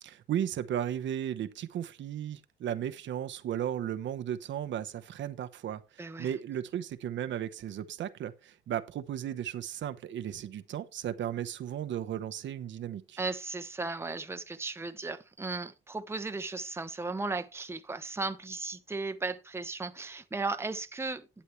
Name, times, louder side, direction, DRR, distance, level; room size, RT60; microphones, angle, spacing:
voice 1, 0.0-13.2, right 10 dB, 70° right, 1.0 m, -35 dB
voice 2, 6.0-6.3 13.2-21.4, right 3 dB, 10° right, 0.9 m, -36 dB
11.5 x 8.4 x 3.1 m
cardioid pair, 90°, 20 cm